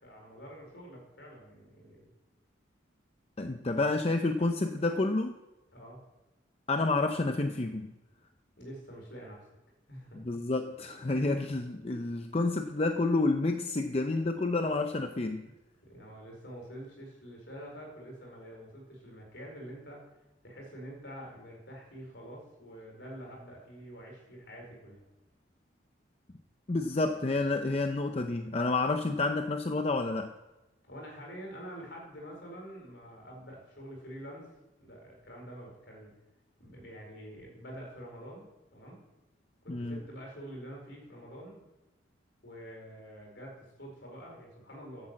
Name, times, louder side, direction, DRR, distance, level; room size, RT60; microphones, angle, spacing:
voice 1, 0.0-2.1 5.7-6.0 8.6-9.4 9.9-10.3 15.8-20.0 20.4-25.0 30.9-34.5 34.8-36.1 36.6-39.0 39.6-41.6 42.4-45.1, equal, 65° left, 0 dB, 4.5 m, -47 dB
voice 2, 3.4-5.3 6.7-7.9 10.1-15.5 26.7-30.3 39.7-40.0, left 2 dB, 30° left, 6 dB, 0.6 m, -29 dB
11.0 x 8.2 x 7.6 m, 1.0 s
head